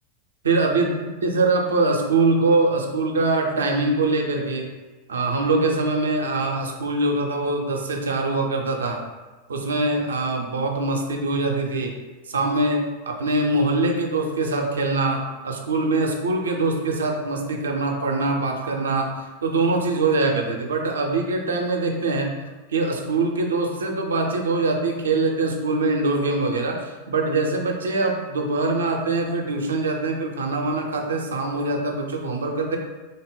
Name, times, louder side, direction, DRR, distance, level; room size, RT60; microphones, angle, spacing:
voice 1, 0.4-4.7 5.1-9.0 9.5-12.0 12.3-19.1 19.4-22.3 22.7-32.8, right 3 dB, 70° right, 2 dB, 0.5 m, -23 dB
3.8 x 2.1 x 3.6 m, 1.2 s
figure-of-eight pair, 90°, 0 cm